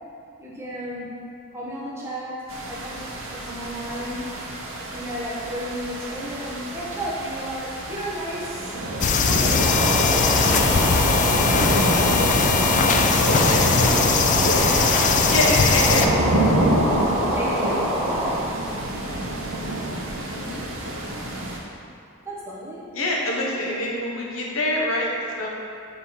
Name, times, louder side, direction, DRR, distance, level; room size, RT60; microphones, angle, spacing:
voice 1, 0.4-1.2 1.5-4.3 4.8-8.7 9.3-10.8 11.8-12.2 17.3-17.8 22.2-22.9, equal, 10° right, -7 dB, 1.1 m, -33 dB
sound 1, 2.5-21.6, right 1 dB, 70° right, 0.9 m, -28 dB
sound 2, 9.0-16.1, left 5 dB, 35° left, 0.3 m, -20 dB
sound 3, 9.6-18.4, right 1 dB, 10° left, 1.1 m, -25 dB
voice 2, 13.1-14.8 15.3-16.6 20.3-20.6 22.9-25.1 25.4-25.5, left 1 dB, 70° left, -2 dB, 0.9 m, -26 dB
5.5 x 4.9 x 4.2 m, 2.4 s
head